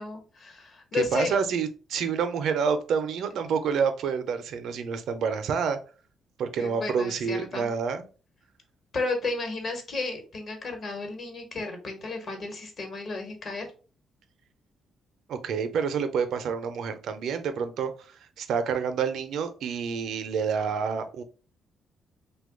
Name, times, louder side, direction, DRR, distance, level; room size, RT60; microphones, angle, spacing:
voice 1, 0.0-1.3 6.6-7.7 8.9-13.7, left 3 dB, 50° left, 4 dB, 1.1 m, -33 dB
voice 2, 0.9-5.8 6.4-8.0 15.3-21.2, right 6 dB, 75° right, 8 dB, 0.5 m, -28 dB
2.9 x 2.2 x 3.6 m, 0.36 s
cardioid pair, 90°, 0 cm